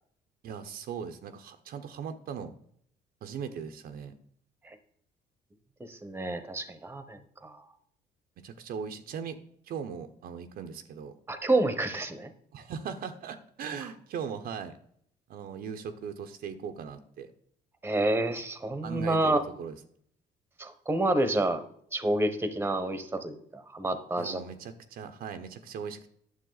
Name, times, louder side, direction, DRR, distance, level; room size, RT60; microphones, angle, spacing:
voice 1, 0.4-2.5 3.2-4.1 8.4-9.4 9.7-11.1 12.5-14.8 15.3-17.3 18.8-19.8 24.2-26.1, right 7 dB, 65° right, 7 dB, 0.8 m, -39 dB
voice 2, 5.9-7.6 11.3-12.3 17.8-19.4 20.6-21.6 21.9-24.4, right 2 dB, 15° right, 10 dB, 1.0 m, -29 dB
9.5 x 7.0 x 4.0 m, 0.66 s
cardioid pair, 110°, 17 cm